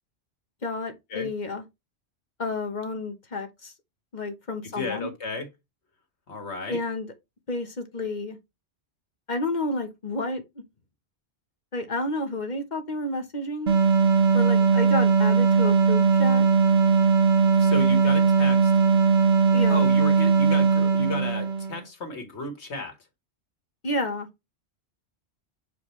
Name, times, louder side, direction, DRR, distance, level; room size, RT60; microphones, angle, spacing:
voice 1, 0.6-1.6 2.4-3.7 4.1-5.1 6.7-7.1 7.5-8.4 9.3-10.4 11.7-13.8 14.3-16.4 19.5-19.8 23.8-24.3, left 2 dB, 45° left, 1.2 m, -30 dB
voice 2, 4.7-5.5 6.3-6.8 17.6-18.7 19.7-23.0, left 2 dB, 85° left, 1.8 m, -33 dB
sound 1, 13.7-21.8, right 5 dB, 70° right, 1.2 m, -19 dB
7.0 x 4.7 x 3.1 m
omnidirectional pair, 1.1 m